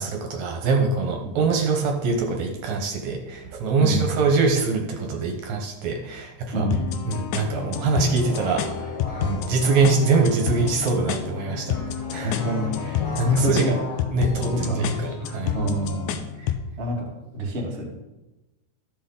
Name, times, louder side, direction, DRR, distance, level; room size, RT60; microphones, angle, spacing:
voice 1, 0.0-6.7 7.1-11.8 12.1-12.4 13.2-13.8 14.1-15.6 16.4-16.5, right 4 dB, 70° right, 3 dB, 2.2 m, -24 dB
voice 2, 6.5-6.9 9.2-9.4 12.2-12.7 13.2-13.7 14.5-15.0 15.5-16.3 16.8-17.9, equal, 30° right, -2 dB, 1.2 m, -26 dB
sound 1, 6.7-16.7, left 9 dB, 80° left, 1.9 m, -30 dB
sound 2, 8.0-15.5, equal, 15° left, 1.4 m, -35 dB
12.5 x 6.2 x 3.8 m, 1.0 s
omnidirectional pair, 3.7 m